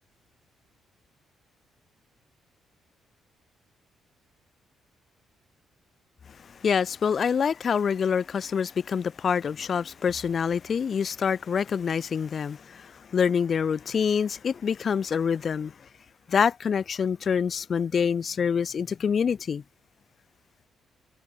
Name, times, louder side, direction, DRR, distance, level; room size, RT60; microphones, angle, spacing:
voice 1, 6.6-15.7 16.3-19.6, left 6 dB, 50° left, 0.4 m, -26 dB
cardioid pair, 90°, 0 cm